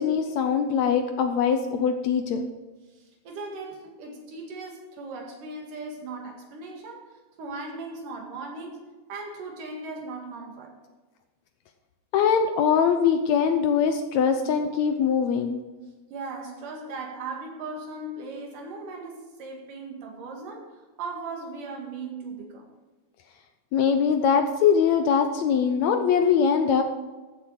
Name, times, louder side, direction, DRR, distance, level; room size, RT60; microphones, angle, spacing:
voice 1, 0.0-2.5 12.1-15.6 23.7-26.8, left 7 dB, 75° left, 7 dB, 1.7 m, -22 dB
voice 2, 2.9-10.7 16.1-22.7, right 3 dB, 80° right, 1 dB, 3.5 m, -38 dB
14.0 x 7.5 x 4.8 m, 1.2 s
omnidirectional pair, 3.7 m